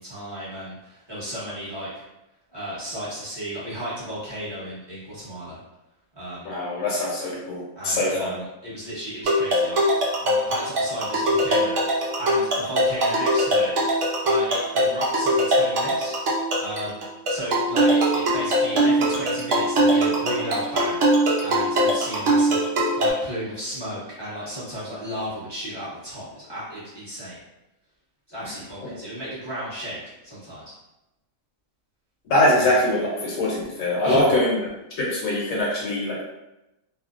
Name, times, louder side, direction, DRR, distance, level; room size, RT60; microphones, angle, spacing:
voice 1, 0.0-2.0 2.5-5.6 6.2-6.5 7.8-9.8 10.2-13.7 14.2-16.2 16.6-27.4 28.3-30.7 32.5-32.8 34.0-34.3, equal, 20° right, -10 dB, 0.9 m, -34 dB
voice 2, 6.4-8.3 28.8-28.9 32.3-34.6 35.0-36.2, left 1 dB, 75° left, -4 dB, 1.1 m, -23 dB
sound 1, 9.2-23.1, right 1 dB, 65° right, 0.9 m, -21 dB
2.6 x 2.0 x 2.4 m, 0.95 s
omnidirectional pair, 1.5 m